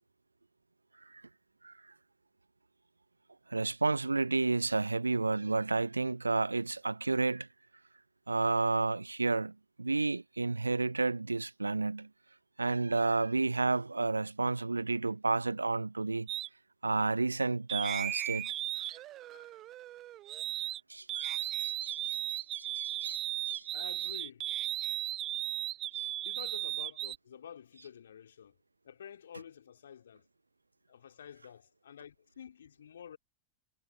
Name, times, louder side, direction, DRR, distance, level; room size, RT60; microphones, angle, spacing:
voice 1, 3.5-7.5 8.3-12.1 12.6-16.3 16.8-18.9 19.3-19.4 20.9-23.7 25.9-26.1, right 3 dB, 80° right, 0.4 m, -31 dB
sound 1, 16.3-16.5 17.7-20.8 21.1-27.2, right 14 dB, 35° right, 0.5 m, -36 dB
voice 2, 23.7-24.5 26.2-28.6 28.8-30.2 30.9-33.2, left 8 dB, 65° left, 3.6 m, -49 dB
figure-of-eight pair, 90°, 0 cm